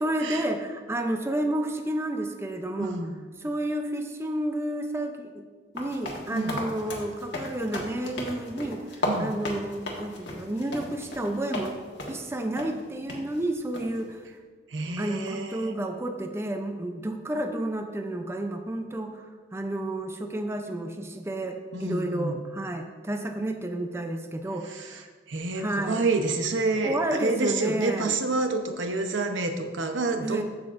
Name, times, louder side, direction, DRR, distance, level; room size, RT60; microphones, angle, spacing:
voice 1, 0.0-3.0 3.4-5.4 5.7-11.8 12.1-14.2 15.0-19.2 19.5-25.1 25.6-26.0 26.8-28.2 30.2-30.4, right 1 dB, 15° right, 5 dB, 0.5 m, -31 dB
voice 2, 2.8-3.2 6.3-6.7 9.0-9.3 14.7-15.7 21.7-22.4 24.6-30.4, right 3 dB, 90° right, 6 dB, 0.8 m, -29 dB
sound 1, 5.8-11.7 12.0-12.3 12.6-12.7 13.1-13.2 13.7-14.0, left 1 dB, 65° left, 1.5 m, -35 dB
14.5 x 5.9 x 2.5 m, 1.5 s
head